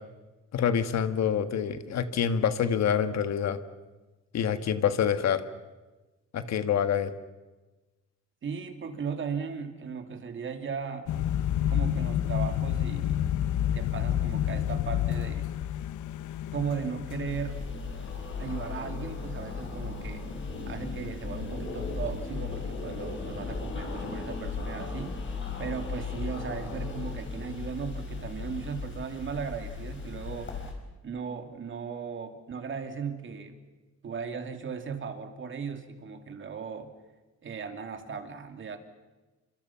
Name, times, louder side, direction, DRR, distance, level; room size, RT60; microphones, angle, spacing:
voice 1, 0.5-3.6 4.3-5.4 6.3-7.1, left 8 dB, 65° left, 10 dB, 1.6 m, -26 dB
voice 2, 8.4-11.1 11.7-13.2 13.7-15.5 16.5-17.6 18.4-20.3 20.7-25.2 25.6-30.5 31.0-33.6 34.0-36.9 37.4-38.8, right 6 dB, 40° right, 6 dB, 2.6 m, -37 dB
sound 1, 11.1-20.4 20.7-21.1 21.3-21.7 22.0-22.2, left 11 dB, 80° left, 1.0 m, -30 dB
sound 2, 17.2-30.7, left 4 dB, 40° left, 5.5 m, -36 dB
29.0 x 26.0 x 5.8 m, 1.2 s
cardioid pair, 150°, 29 cm